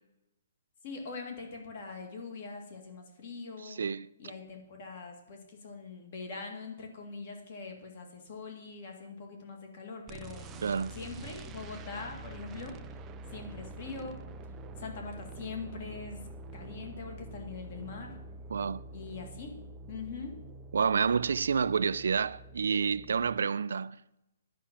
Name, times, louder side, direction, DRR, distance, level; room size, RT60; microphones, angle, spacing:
voice 1, 0.8-3.8 4.2-10.6 10.9-12.8 13.3-14.2 14.8-16.2 16.5-18.2 18.9-19.5 19.9-20.3, left 4 dB, 35° left, 2.2 m, -42 dB
voice 2, 3.6-4.1 10.6-11.0 18.5-18.8 20.7-24.0, right 6 dB, 80° right, 0.4 m, -29 dB
sound 1, 10.1-23.4, right 2 dB, 10° right, 0.4 m, -46 dB
10.0 x 6.0 x 8.7 m
hypercardioid pair, 180°, 0 cm